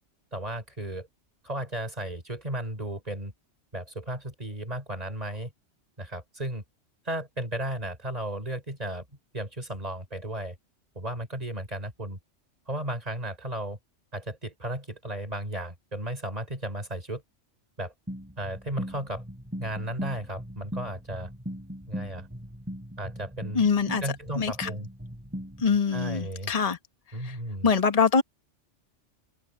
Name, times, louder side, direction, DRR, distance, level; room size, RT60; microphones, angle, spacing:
voice 1, 0.3-1.1 1.4-3.3 3.7-5.5 6.0-6.6 7.0-9.1 9.3-10.6 10.9-12.2 12.7-13.8 14.1-17.2 17.8-17.9 18.4-19.2 19.6-21.3 21.9-22.3 23.0-23.6 24.0-24.9 25.9-26.5 27.1-27.7, right 1 dB, 30° right, 4.9 m, -34 dB
sound 1, 18.1-25.8, equal, 10° right, 4.6 m, -39 dB
voice 2, 23.5-24.0 24.4-24.7 25.6-26.8 27.2-27.3 27.6-28.2, left 5 dB, 30° left, 1.4 m, -24 dB
open air
omnidirectional pair, 1.3 m